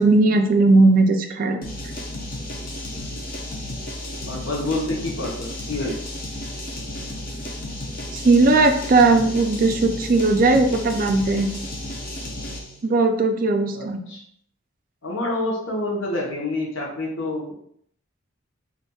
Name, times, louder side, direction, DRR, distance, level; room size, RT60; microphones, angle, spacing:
voice 1, 0.0-1.6 8.1-11.5 12.8-14.0, right 3 dB, 40° right, 5 dB, 0.3 m, -17 dB
sound 1, 1.6-12.8, left 1 dB, 45° left, 0.6 m, -33 dB
voice 2, 4.2-6.1 13.7-14.2 15.0-17.5, left 2 dB, 70° left, -2 dB, 0.9 m, -28 dB
4.1 x 2.5 x 2.3 m, 0.66 s
head